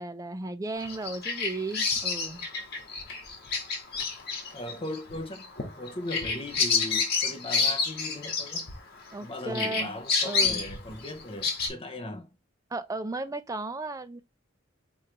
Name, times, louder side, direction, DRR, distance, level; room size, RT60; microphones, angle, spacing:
voice 1, 0.0-2.4 9.1-10.6 12.7-14.2, right 2 dB, 15° right, 0.4 m, -35 dB
Bird vocalization bird call bird song, 0.8-9.2 9.5-11.7, left 5 dB, 55° left, 1.4 m, -29 dB
voice 2, 4.5-8.7 9.2-12.3, left 1 dB, 30° left, 0.7 m, -38 dB
3.5 x 3.1 x 4.6 m
head